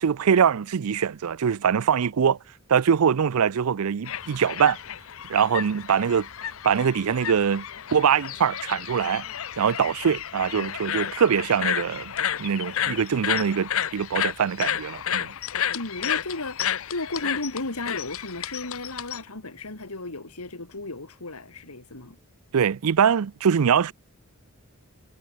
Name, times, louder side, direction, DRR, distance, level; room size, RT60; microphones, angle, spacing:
voice 1, 0.0-2.4 2.7-4.8 5.3-6.3 6.6-7.7 7.9-9.2 9.6-12.1 12.4-15.3 22.5-23.9, right 7 dB, 75° right, 0.5 m, -23 dB
sound 1, 4.0-19.2, left 9 dB, 65° left, 0.8 m, -31 dB
voice 2, 15.7-22.2, left 2 dB, 80° left, 2.8 m, -34 dB
head